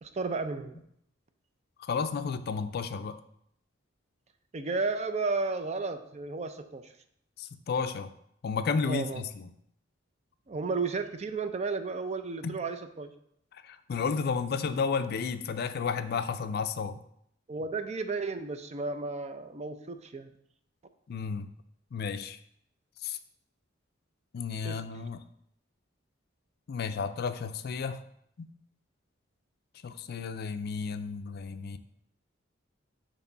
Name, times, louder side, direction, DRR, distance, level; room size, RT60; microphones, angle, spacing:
voice 1, 0.0-0.8 4.5-6.9 8.9-9.2 10.5-13.1 17.5-20.3 24.6-24.8, right 3 dB, 35° right, 9 dB, 0.5 m, -33 dB
voice 2, 1.8-3.2 7.4-8.1 8.4-9.5 12.4-12.6 13.5-17.0 21.1-21.5 21.9-22.4 23.0-23.2 24.3-25.2 26.7-28.0 28.4-28.5 29.8-31.8, left 5 dB, 55° left, 11 dB, 0.4 m, -32 dB
6.9 x 3.0 x 5.3 m, 0.72 s
head